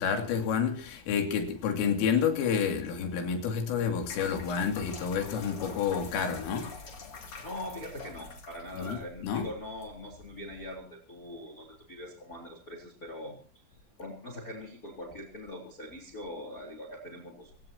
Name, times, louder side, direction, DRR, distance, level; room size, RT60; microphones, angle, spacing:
voice 1, 0.0-6.7 8.7-9.0 9.2-9.5, left 7 dB, 80° left, 5.2 m, -29 dB
sound 1, 3.9-10.8, left 4 dB, 35° left, 2.7 m, -47 dB
voice 2, 7.4-13.4 14.0-17.5, left 1 dB, 20° left, 3.4 m, -42 dB
26.5 x 17.0 x 2.9 m
omnidirectional pair, 5.8 m